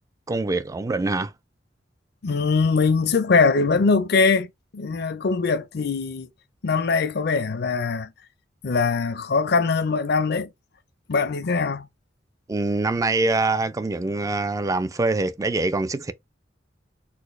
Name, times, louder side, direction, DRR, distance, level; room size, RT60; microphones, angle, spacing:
voice 1, 0.3-1.3 12.5-16.1, right 3 dB, 20° right, 0.3 m, -24 dB
voice 2, 2.2-4.5 4.7-6.3 6.6-8.1 8.6-10.5 11.1-11.9, left 4 dB, 60° left, 0.5 m, -22 dB
4.2 x 2.1 x 3.2 m
head